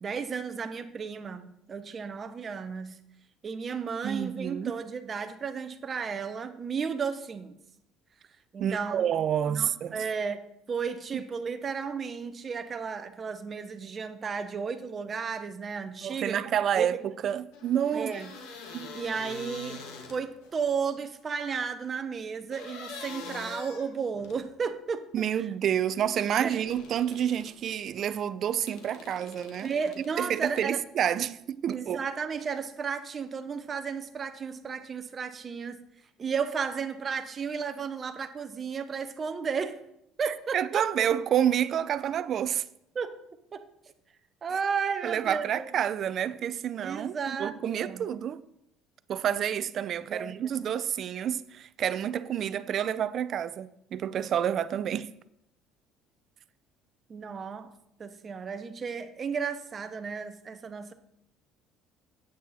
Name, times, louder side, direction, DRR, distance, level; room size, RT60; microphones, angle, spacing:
voice 1, 0.0-3.0 3.4-7.5 8.5-9.1 9.5-10.4 10.7-16.5 16.8-17.1 17.9-18.3 18.9-19.8 20.1-25.1 25.3-25.5 26.4-26.5 29.6-30.8 31.7-35.8 36.2-39.8 40.2-41.1 42.9-43.2 43.5-43.7 44.4-45.6 46.8-48.1 50.1-50.7 57.1-57.7 58.0-60.9, right 6 dB, 35° right, 1.0 m, -33 dB
voice 2, 4.0-4.8 8.6-10.0 11.1-11.2 16.0-18.1 18.7-19.0 25.1-29.7 30.2-32.0 40.2-42.6 45.0-48.4 49.1-55.1, right 9 dB, 50° right, 0.5 m, -29 dB
sound 1, 17.5-20.5 22.5-24.4 26.2-27.6 28.7-30.6, left 4 dB, 80° left, 1.7 m, -44 dB
8.7 x 8.2 x 4.2 m
cardioid pair, 115°, 0 cm